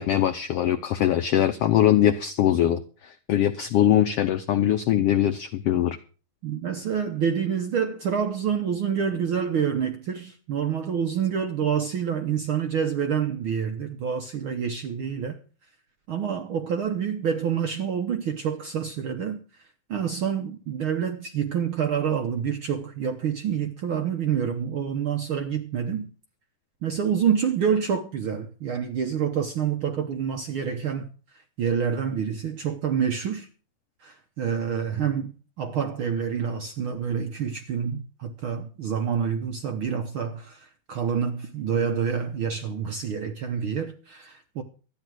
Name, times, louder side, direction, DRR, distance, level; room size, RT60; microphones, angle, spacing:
voice 1, 0.0-6.0, left 11 dB, 80° left, 1.3 m, -22 dB
voice 2, 6.4-15.4 16.1-19.4 19.9-26.1 26.8-31.1 31.6-33.5 34.0-44.6, right 7 dB, 65° right, 1.3 m, -27 dB
13.0 x 10.0 x 6.2 m
omnidirectional pair, 3.6 m